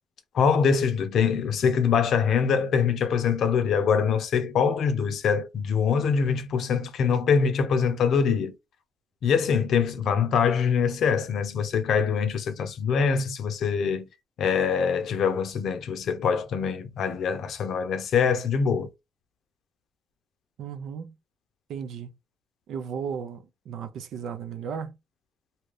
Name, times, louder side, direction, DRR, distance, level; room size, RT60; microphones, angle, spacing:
voice 1, 0.3-8.5 9.2-14.1 14.4-18.9, left 6 dB, 70° left, 0.6 m, -24 dB
voice 2, 20.6-21.1 21.7-22.1 22.7-25.0, right 7 dB, 75° right, 0.5 m, -35 dB
2.8 x 2.4 x 3.2 m
cardioid pair, 90°, 0 cm